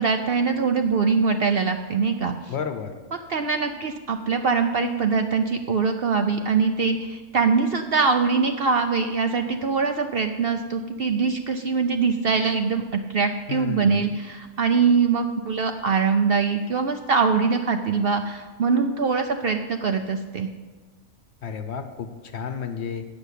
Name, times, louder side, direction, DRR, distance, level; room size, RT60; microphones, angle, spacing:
voice 1, 0.0-2.3 3.3-20.5, right 5 dB, 60° right, 6 dB, 0.6 m, -23 dB
voice 2, 2.5-3.0 13.5-14.1 21.4-23.1, left 6 dB, 60° left, 8 dB, 0.9 m, -32 dB
8.8 x 7.0 x 8.1 m, 1.3 s
omnidirectional pair, 1.5 m